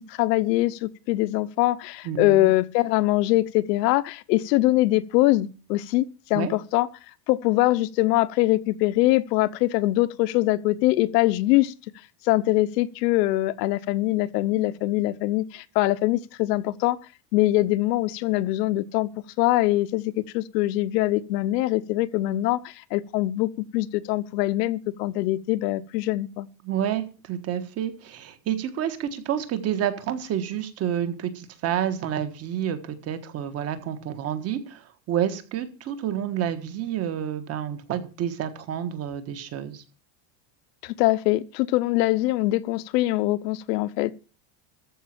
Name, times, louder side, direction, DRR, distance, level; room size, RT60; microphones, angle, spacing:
voice 1, 0.1-6.9 7.3-11.7 12.2-17.0 17.3-19.1 19.4-26.5 40.8-44.1, left 17 dB, 75° left, 1.0 m, -23 dB
voice 2, 2.0-2.5 6.3-6.5 26.6-39.8, right 10 dB, 30° right, 1.5 m, -29 dB
14.0 x 5.5 x 8.8 m
cardioid pair, 180°, 49 cm